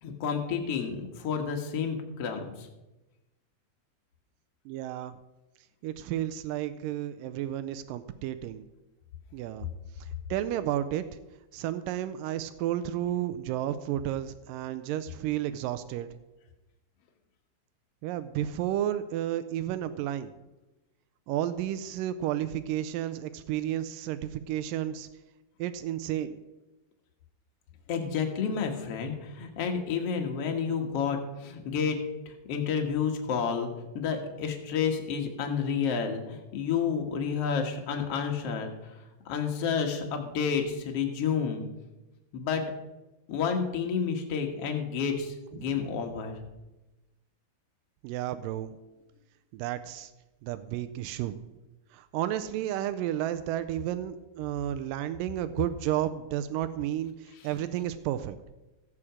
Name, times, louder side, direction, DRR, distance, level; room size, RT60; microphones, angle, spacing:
voice 1, 0.0-2.7 27.9-32.0 32.3-39.0 39.3-41.7 42.3-42.6 43.3-46.3 57.4-57.5, left 6 dB, 55° left, 3 dB, 1.8 m, -30 dB
voice 2, 4.7-5.1 5.8-8.6 9.3-9.7 10.3-11.0 11.5-16.1 18.0-20.3 21.3-25.1 25.6-26.4 48.0-48.7 49.5-50.1 50.4-51.4 51.9-58.4, right 12 dB, 90° right, 11 dB, 1.9 m, -32 dB
15.5 x 8.7 x 5.0 m, 1.0 s
omnidirectional pair, 4.5 m